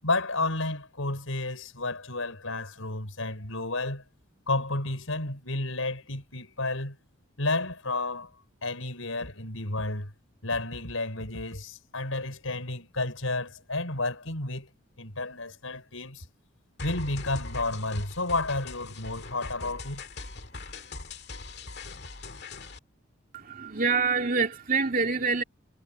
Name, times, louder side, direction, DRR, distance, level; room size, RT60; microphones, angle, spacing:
voice 1, 0.0-4.0 4.5-7.0 7.4-8.3 8.6-10.1 10.4-14.7 15.0-16.2 16.8-20.0, left 2 dB, 75° left, 5.5 m, -31 dB
sound 1, 16.8-22.8, left 3 dB, 55° left, 2.1 m, -41 dB
voice 2, 23.3-25.4, right 4 dB, 45° right, 2.8 m, -26 dB
head